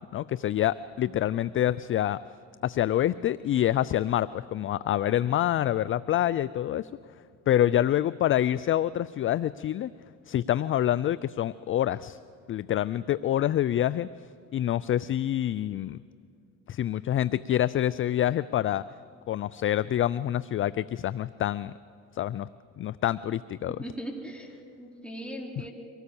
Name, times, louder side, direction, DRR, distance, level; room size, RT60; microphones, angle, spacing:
voice 1, 0.1-2.2 2.6-6.9 7.5-9.9 10.3-12.2 12.5-14.1 14.5-16.0 16.7-18.8 19.3-21.7 22.1-22.5 22.8-23.8, left 12 dB, 35° left, 18 dB, 0.4 m, -26 dB
voice 2, 23.8-25.7, right 1 dB, 5° left, -1 dB, 4.3 m, -39 dB
24.5 x 18.0 x 7.0 m, 2.3 s
supercardioid pair, 80°, 37 cm